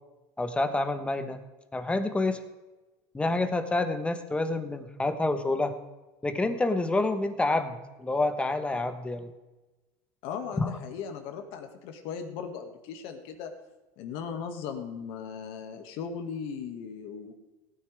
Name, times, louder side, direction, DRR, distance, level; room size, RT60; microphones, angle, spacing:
voice 1, 0.4-1.4 1.7-2.4 3.1-5.7 6.2-9.3 10.6-10.7, left 2 dB, 10° left, 9 dB, 1.2 m, -28 dB
voice 2, 10.2-13.5 14.0-17.4, left 6 dB, 65° left, 5 dB, 2.1 m, -38 dB
18.0 x 9.4 x 3.5 m, 1.1 s
supercardioid pair, 115°, 10 cm